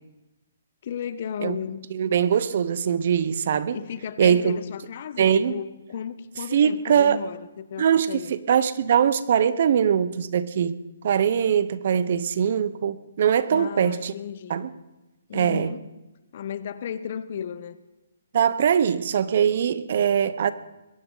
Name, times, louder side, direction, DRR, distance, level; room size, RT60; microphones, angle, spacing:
voice 1, 0.8-1.8 3.7-8.3 13.5-14.6 15.3-15.8 16.3-17.8, left 8 dB, 50° left, 1.0 m, -34 dB
voice 2, 1.9-3.8 4.2-4.6 5.2-5.6 6.5-7.2 7.8-10.8 11.0-14.1 14.5-14.7 15.3-15.7 18.3-20.5, right 8 dB, 55° right, 0.9 m, -22 dB
22.0 x 16.0 x 4.1 m
hypercardioid pair, 155°, 0 cm